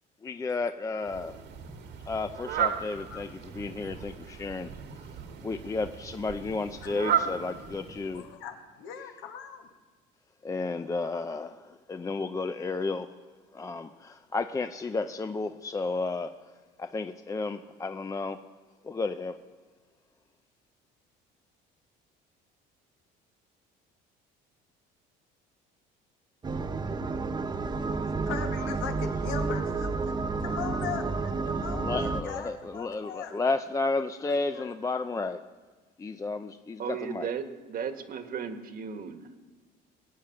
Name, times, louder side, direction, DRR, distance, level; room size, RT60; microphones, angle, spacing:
voice 1, 0.2-1.4 2.1-4.7 5.4-8.3 10.4-13.2 13.5-18.4 18.8-19.4 31.6-35.4 36.0-37.3, left 3 dB, 15° left, 0.5 m, -32 dB
Fowl, 1.0-8.4, right 8 dB, 65° right, 1.8 m, -35 dB
voice 2, 8.1-9.7 28.3-33.4 34.2-34.7, left 7 dB, 80° left, 1.9 m, -40 dB
sound 1, 26.4-32.2, right 4 dB, 20° right, 0.8 m, -30 dB
voice 3, 36.8-39.4, right 7 dB, 50° right, 1.5 m, -36 dB
21.0 x 8.9 x 5.8 m
cardioid pair, 110°, 19 cm